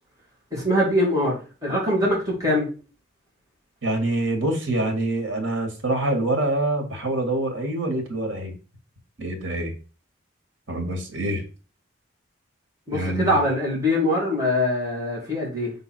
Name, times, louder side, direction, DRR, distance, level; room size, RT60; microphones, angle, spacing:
voice 1, 0.5-2.7 12.9-15.7, left 1 dB, 15° right, -5 dB, 2.5 m, -23 dB
voice 2, 3.8-8.5 9.2-9.7 10.7-11.4 12.9-13.4, right 1 dB, 75° right, 4 dB, 1.8 m, -25 dB
5.5 x 3.9 x 4.4 m, 0.35 s
head